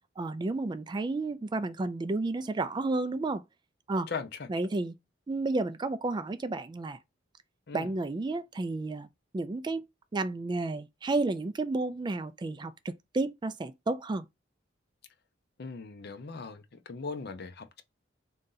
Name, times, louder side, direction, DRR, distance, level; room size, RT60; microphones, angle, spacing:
voice 1, 0.2-3.4 3.9-4.1 4.5-5.0 5.3-7.0 7.7-9.1 9.3-9.9 10.1-14.2, right 2 dB, 25° right, 0.3 m, -31 dB
voice 2, 4.1-4.5 7.7-7.9 15.6-17.8, left 4 dB, 60° left, 0.6 m, -39 dB
3.8 x 2.7 x 3.8 m
head